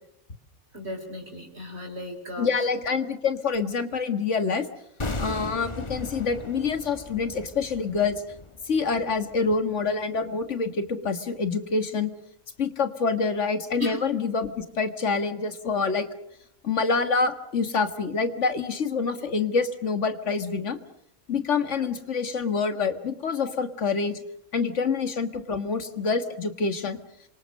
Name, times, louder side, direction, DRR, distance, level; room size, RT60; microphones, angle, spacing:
voice 1, 0.7-2.5 13.8-14.0 21.8-21.9, left 1 dB, 55° right, 2 dB, 4.9 m, -35 dB
voice 2, 2.4-4.7 5.2-8.2 8.7-12.1 12.6-16.1 16.6-20.8 21.3-24.2 24.5-27.0, left 4 dB, 70° left, 9 dB, 2.0 m, -26 dB
sound 1, 5.0-10.0 10.3-10.4, left 2 dB, 25° left, 1.3 m, -37 dB
27.0 x 24.5 x 6.6 m, 0.75 s
omnidirectional pair, 1.3 m